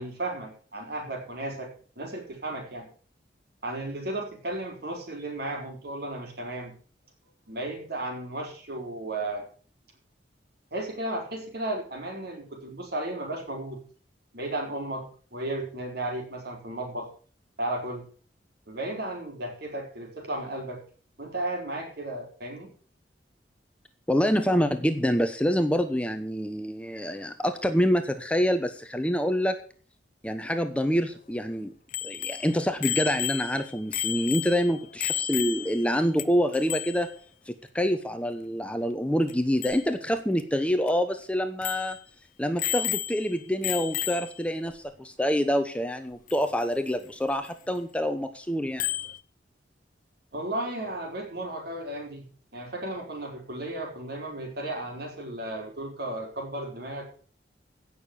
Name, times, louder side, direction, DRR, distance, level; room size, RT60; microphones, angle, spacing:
voice 1, 0.0-1.7 2.0-2.9 3.6-6.8 7.5-9.4 10.7-13.8 14.3-17.1 17.6-18.1 18.7-20.8 21.2-22.7 50.3-57.0, right 1 dB, 60° right, 2 dB, 4.8 m, -34 dB
voice 2, 24.1-29.6 30.2-31.7 32.0-37.1 37.5-42.0 42.4-48.8, equal, 5° left, 8 dB, 0.9 m, -26 dB
Bicycle bell, 31.9-35.9 36.2-36.3 36.5-37.1 39.3-39.4 39.6-39.8 40.4-40.5 40.9-41.0 41.6-42.0 42.6-43.3 43.6-44.4 46.3-46.4 48.8-49.2, left 11 dB, 50° left, 0.6 m, -32 dB
16.5 x 6.8 x 6.9 m, 0.42 s
head